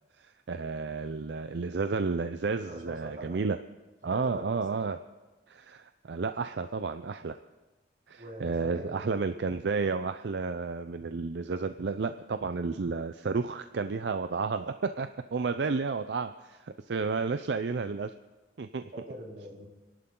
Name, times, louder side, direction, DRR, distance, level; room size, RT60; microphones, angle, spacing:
voice 1, 0.2-3.6 4.0-5.0 5.5-7.4 8.1-18.1 18.6-18.9, right 4 dB, 70° right, 10 dB, 0.5 m, -32 dB
voice 2, 2.6-3.4 4.0-4.8 8.2-9.1 15.4-15.6 18.9-19.7, right 1 dB, 45° right, -3 dB, 3.4 m, -44 dB
29.5 x 11.5 x 3.8 m, 1.2 s
head